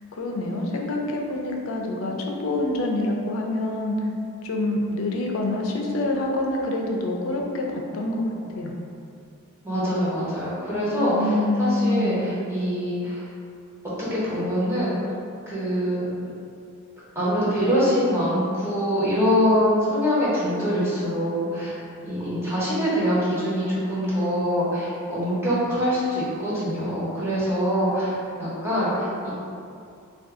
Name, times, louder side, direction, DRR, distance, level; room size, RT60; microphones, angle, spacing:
voice 1, 0.1-4.0 4.4-8.7 11.0-12.3, left 2 dB, 70° left, 1 dB, 0.4 m, -26 dB
voice 2, 9.6-13.2 14.0-14.9 15.5-16.1 17.1-21.7 22.0-28.1 28.4-29.3, equal, 10° right, -10 dB, 0.8 m, -24 dB
2.5 x 2.3 x 3.6 m, 2.5 s
head